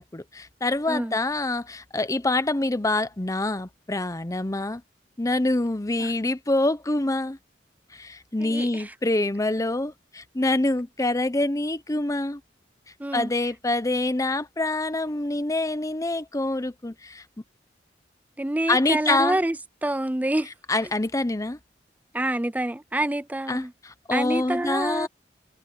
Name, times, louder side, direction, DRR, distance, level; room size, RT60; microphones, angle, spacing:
voice 1, 0.0-4.8 5.2-7.4 7.9-12.4 13.1-17.2 18.7-19.4 20.7-21.6 23.5-25.1, left 2 dB, 20° left, 0.7 m, -26 dB
voice 2, 8.4-8.9 13.0-13.3 18.4-19.6 19.8-20.5 22.1-23.7 24.1-25.1, right 1 dB, 10° right, 0.5 m, -27 dB
head